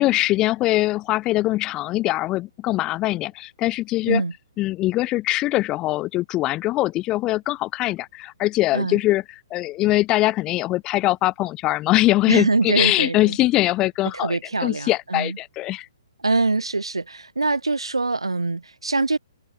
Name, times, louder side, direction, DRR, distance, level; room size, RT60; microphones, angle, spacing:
voice 1, 0.0-4.2 4.6-9.2 9.5-15.9, left 17 dB, 25° left, 1.6 m, -22 dB
voice 2, 12.3-13.4 14.1-15.4 16.2-19.2, right 3 dB, 90° right, 3.0 m, -24 dB
open air
figure-of-eight pair, 135°, 3 cm